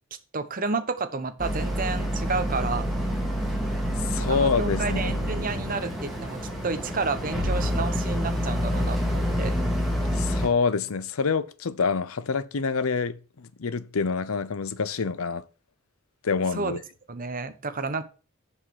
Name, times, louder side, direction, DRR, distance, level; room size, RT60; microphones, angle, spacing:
voice 1, 0.3-2.8 4.1-9.5 16.5-16.8 17.1-18.0, right 4 dB, 40° right, 1.0 m, -31 dB
Boat Water vehicle, 1.4-10.5, equal, ahead, 2.3 m, -27 dB
voice 2, 4.1-5.1 10.1-15.4 16.2-16.8, left 5 dB, 80° left, 0.7 m, -27 dB
7.5 x 6.3 x 6.3 m
head